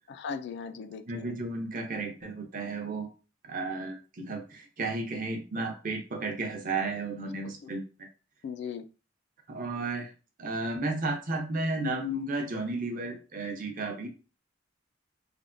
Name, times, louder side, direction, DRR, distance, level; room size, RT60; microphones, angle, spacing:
voice 1, 0.1-1.3 7.4-7.7 8.4-8.9, left 6 dB, 60° left, 11 dB, 0.3 m, -38 dB
voice 2, 1.1-3.1 3.4-8.1 9.5-10.1 10.4-14.1, right 2 dB, 45° right, 3 dB, 0.7 m, -33 dB
3.4 x 2.1 x 2.5 m, 0.33 s
head